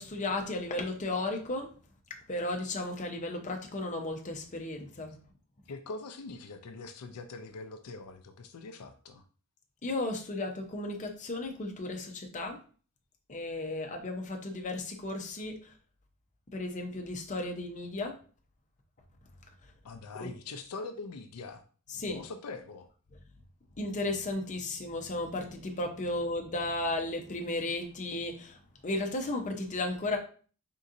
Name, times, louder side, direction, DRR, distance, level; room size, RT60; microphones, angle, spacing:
voice 1, 0.0-1.7 2.3-5.2 9.8-12.6 13.3-15.7 16.5-18.2 20.2-20.3 21.9-22.2 23.8-28.6 28.8-30.2, left 2 dB, 35° left, 2 dB, 0.6 m, -34 dB
voice 2, 5.7-9.2 19.8-21.6 22.1-22.9, left 3 dB, 80° left, 7 dB, 0.4 m, -43 dB
4.0 x 3.7 x 2.5 m, 0.40 s
head